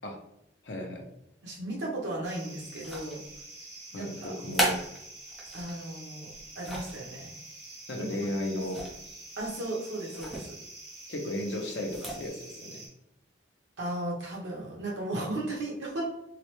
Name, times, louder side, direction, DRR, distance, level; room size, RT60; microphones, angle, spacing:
voice 1, 0.6-1.0 3.9-4.8 7.9-8.8 11.1-12.8, left 1 dB, 70° left, 1 dB, 0.8 m, -34 dB
voice 2, 1.4-3.2 3.9-4.3 5.5-7.3 8.0-8.3 9.4-10.6 13.8-16.1, right 1 dB, 80° right, -3 dB, 1.2 m, -35 dB
sound 1, 2.2-12.9, right 2 dB, 40° right, 1.2 m, -47 dB
sound 2, 2.7-3.4 4.2-5.7 6.3-7.0 8.6-9.1 9.4-9.5 10.1-10.5 11.8-12.3, right 1 dB, ahead, 0.7 m, -35 dB
3.8 x 2.1 x 3.1 m, 0.79 s
head